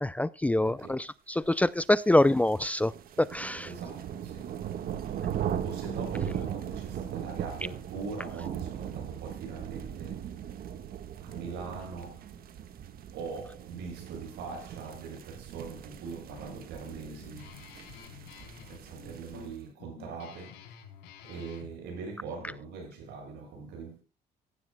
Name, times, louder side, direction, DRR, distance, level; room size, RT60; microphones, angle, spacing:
voice 1, 0.0-2.9 3.2-3.7, left 1 dB, 10° left, 0.5 m, -25 dB
voice 2, 0.6-1.1 3.6-4.6 5.0-10.3 11.2-12.3 13.1-17.6 18.7-20.7 21.2-24.0, right 4 dB, 80° right, 7.1 m, -42 dB
sound 1, 2.0-19.5, right 9 dB, 60° right, 1.6 m, -39 dB
Guitar, 15.9-21.7, left 8 dB, 85° left, 3.7 m, -50 dB
15.5 x 11.5 x 2.2 m
cardioid pair, 110°, 17 cm